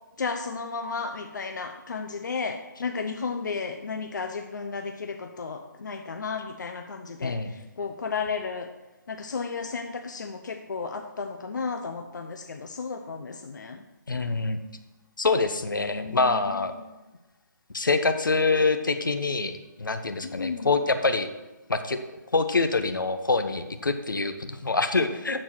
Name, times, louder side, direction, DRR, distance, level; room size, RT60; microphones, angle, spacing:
voice 1, 0.2-8.7 9.1-13.8 15.8-16.5 20.2-20.7, left 5 dB, 70° left, 5 dB, 0.9 m, -33 dB
voice 2, 7.2-7.5 14.1-14.6 15.2-16.7 17.7-21.3 21.7-22.0 22.3-25.4, left 3 dB, 85° left, 8 dB, 1.1 m, -25 dB
14.0 x 4.6 x 6.1 m, 1.1 s
figure-of-eight pair, 150°, 10 cm